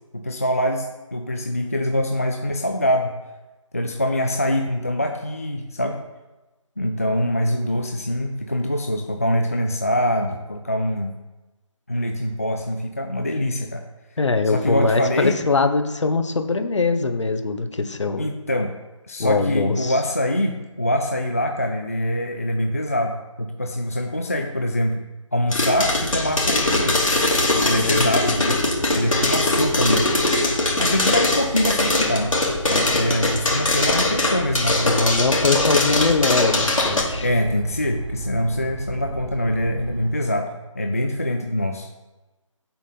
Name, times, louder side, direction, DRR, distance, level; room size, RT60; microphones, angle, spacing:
voice 1, 0.1-3.2 3.7-6.0 6.8-11.1 11.9-13.8 14.4-15.4 18.2-18.7 19.1-25.0 25.3-27.1 27.6-28.6 28.9-30.1 30.8-32.4 32.7-35.0 37.2-41.9, left 1 dB, 30° left, 4 dB, 0.3 m, -24 dB
voice 2, 14.2-18.3 19.2-20.0 27.8-28.1 34.8-37.3, left 3 dB, 60° left, 7 dB, 0.9 m, -22 dB
sound 1, 25.5-37.0, left 2 dB, 80° left, 2.4 m, -21 dB
sound 2, 25.6-40.1, right 1 dB, 85° right, 1.3 m, -33 dB
7.2 x 4.2 x 5.3 m, 1.1 s
figure-of-eight pair, 170°, 17 cm